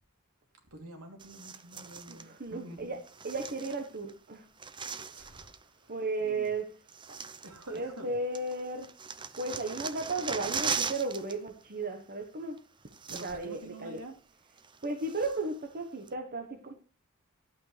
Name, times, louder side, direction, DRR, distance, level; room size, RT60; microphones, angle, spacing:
voice 1, 0.7-2.9 5.1-5.9 6.2-6.5 7.4-8.1 13.1-14.2, right 1 dB, 80° right, 2.9 m, -48 dB
sound 1, 1.2-2.3 3.0-4.1 4.4-5.6 6.4-6.5 6.9-8.1 8.3-11.4 11.6-11.8 12.6-12.7 12.9-13.6 14.0-14.1 14.6-15.5 16.1-16.2, right 5 dB, 20° right, 0.6 m, -39 dB
voice 2, 2.1-4.5 5.9-6.7 7.1-7.2 7.7-8.9 9.4-12.6 13.1-14.0 14.8-16.7, right 3 dB, 45° right, 1.1 m, -35 dB
12.0 x 8.7 x 3.3 m
head